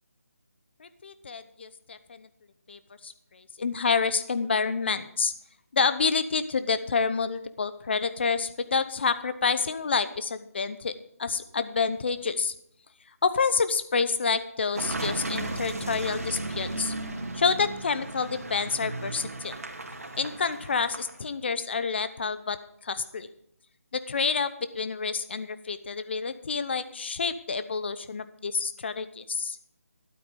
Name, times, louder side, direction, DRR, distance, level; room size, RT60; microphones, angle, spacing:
voice 1, 0.8-2.3 2.7-5.3 5.7-10.9 11.2-12.5 13.2-16.9 17.3-19.6 20.2-22.6 22.8-23.3 23.9-29.6, left 5 dB, 45° left, 13 dB, 0.9 m, -28 dB
Car passing by / Engine, 14.7-21.3, right 2 dB, 75° right, 2.1 m, -35 dB
12.0 x 8.9 x 5.1 m, 0.73 s
figure-of-eight pair, 165°, 8 cm